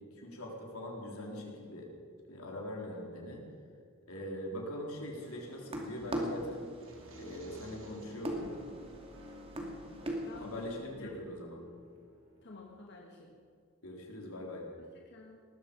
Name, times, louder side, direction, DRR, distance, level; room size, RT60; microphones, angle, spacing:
voice 1, 0.0-1.9 2.3-3.4 4.1-6.7 7.2-8.6 10.4-11.6 13.8-14.7, equal, 80° left, 0 dB, 3.9 m, -42 dB
sound 1, 5.2-10.7, equal, 25° right, 2.5 m, -41 dB
sound 2, 6.7-8.5, right 3 dB, 65° right, 2.7 m, -59 dB
sound 3, 6.9-13.0, left 1 dB, 85° right, 3.7 m, -53 dB
voice 2, 9.6-10.7 11.0-11.1 12.4-13.4 14.9-15.4, left 3 dB, 55° left, 0 dB, 1.7 m, -51 dB
19.5 x 14.0 x 5.3 m, 2.3 s
head